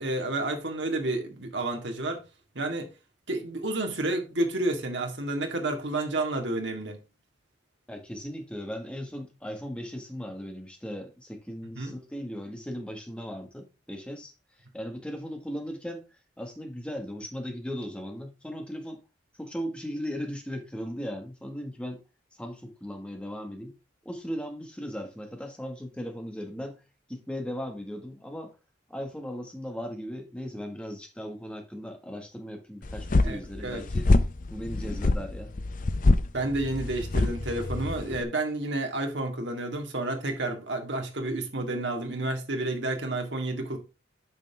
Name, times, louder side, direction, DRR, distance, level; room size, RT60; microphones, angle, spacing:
voice 1, 0.0-2.2 2.6-2.9 3.3-7.0 11.8-11.9 33.2-33.8 36.3-43.8, right 2 dB, 70° right, 2.1 m, -30 dB
voice 2, 7.9-14.3 14.7-19.0 19.4-22.0 22.4-23.8 24.0-26.8 27.1-28.5 28.9-34.1 34.5-35.5, equal, 5° left, 1.7 m, -37 dB
sound 1, 32.8-38.2, left 2 dB, 45° left, 0.6 m, -25 dB
9.2 x 5.8 x 3.5 m
head